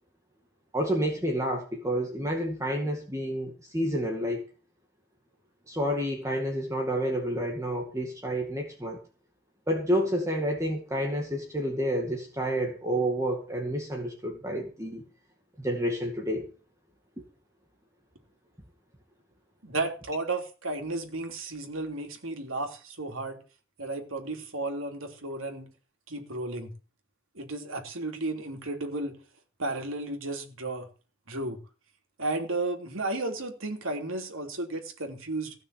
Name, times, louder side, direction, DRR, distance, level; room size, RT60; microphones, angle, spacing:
voice 1, 0.7-4.5 5.7-9.0 9.7-15.0 15.6-16.5, equal, 15° right, 2.2 m, -29 dB
voice 2, 19.6-23.4 23.8-25.7 26.1-26.7 27.3-29.2 29.6-30.9 31.3-31.6 32.2-35.5, right 2 dB, 80° right, 3.1 m, -33 dB
16.0 x 6.5 x 8.4 m
head